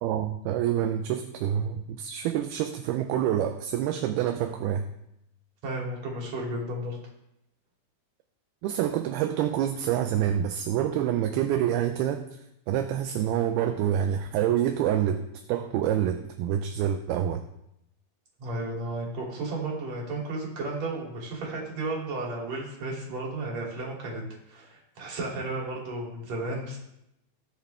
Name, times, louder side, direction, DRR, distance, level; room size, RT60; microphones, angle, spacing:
voice 1, 0.0-4.9 8.6-12.3 12.7-17.4, right 10 dB, 80° right, 6 dB, 2.4 m, -27 dB
voice 2, 5.6-7.0 18.4-24.2 24.5-26.8, right 2 dB, 45° right, -2 dB, 3.8 m, -33 dB
19.5 x 7.3 x 3.5 m, 0.81 s
omnidirectional pair, 4.8 m